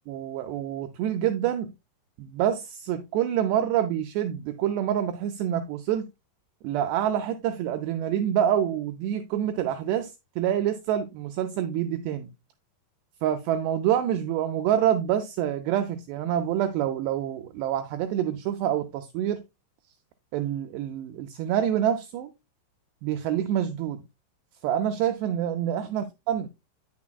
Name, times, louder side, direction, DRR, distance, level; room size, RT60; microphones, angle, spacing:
voice 1, 0.1-1.7 2.2-6.1 6.6-12.3 13.2-19.4 20.3-22.3 23.0-24.0 24.6-26.5, right 10 dB, 90° right, 2.4 m, -27 dB
9.4 x 6.7 x 2.2 m
omnidirectional pair, 5.4 m